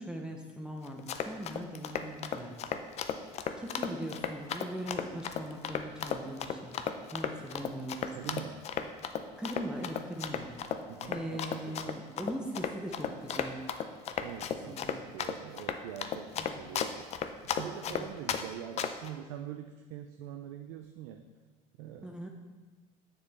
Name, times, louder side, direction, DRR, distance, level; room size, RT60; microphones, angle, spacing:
voice 1, 0.0-2.6 3.6-6.8 7.0-8.3 9.4-10.5 11.1-13.6 14.7-15.0 16.3-16.6 17.8-18.1 22.0-22.3, equal, 5° right, 1 dB, 0.7 m, -40 dB
Run, 0.9-18.4 18.8-19.1, left 8 dB, 45° left, 0.5 m, -34 dB
voice 2, 8.1-8.6 10.9-12.0 14.2-17.1 17.5-21.2 21.8-22.2, right 10 dB, 80° right, 6 dB, 0.5 m, -44 dB
7.3 x 6.8 x 3.5 m, 1.3 s
supercardioid pair, 105°, 16 cm